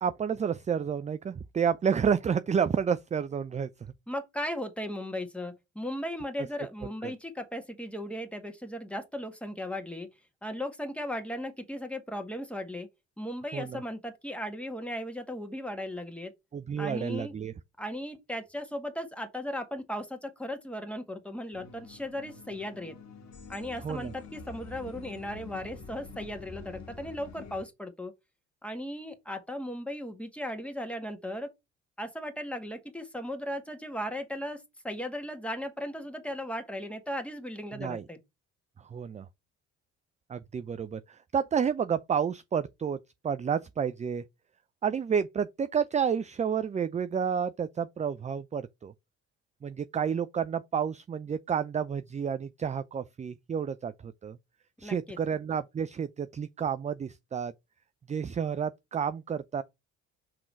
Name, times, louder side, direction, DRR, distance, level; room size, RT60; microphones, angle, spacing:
voice 1, 0.0-3.7 7.0-7.1 13.5-13.8 16.5-17.5 23.8-24.1 37.7-38.1 38.9-39.3 40.3-43.0 43.2-44.2 44.8-48.9 49.6-54.4 54.8-57.5 58.1-59.6, right 7 dB, 20° right, 0.4 m, -30 dB
voice 2, 4.1-10.1 10.4-12.9 13.2-16.3 16.8-17.3 17.8-23.0 23.5-28.1 28.6-31.5 32.0-38.2 54.8-55.2, left 1 dB, 5° left, 1.9 m, -37 dB
sound 1, 21.5-27.7, left 4 dB, 55° left, 1.9 m, -47 dB
5.9 x 3.8 x 4.7 m
hypercardioid pair, 60°, 32 cm